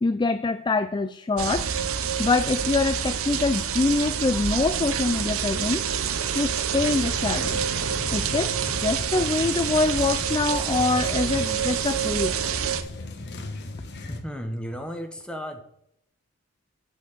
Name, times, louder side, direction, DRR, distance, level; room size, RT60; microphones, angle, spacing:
voice 1, 0.0-1.7 2.2-5.8 6.3-7.6 8.1-12.4, left 3 dB, 20° left, 11 dB, 0.4 m, -25 dB
sound 1, 1.4-12.8, right 7 dB, 70° right, 0.8 m, -27 dB
sound 2, 6.7-14.2, left 2 dB, 55° left, 1.3 m, -37 dB
voice 2, 14.1-15.6, equal, 5° left, 5 dB, 1.2 m, -34 dB
8.5 x 5.9 x 6.8 m, 0.73 s
head